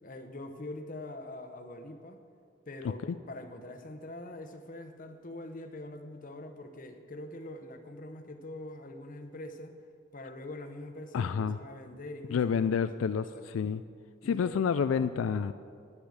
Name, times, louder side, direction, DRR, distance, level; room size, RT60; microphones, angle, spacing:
voice 1, 0.0-2.2 2.7-9.8 10.1-13.5 14.2-14.8, left 1 dB, 45° left, 7 dB, 0.8 m, -44 dB
voice 2, 11.1-11.6 12.3-13.8 14.3-15.5, left 6 dB, 90° left, 12 dB, 0.3 m, -29 dB
10.5 x 9.8 x 6.4 m, 2.3 s
head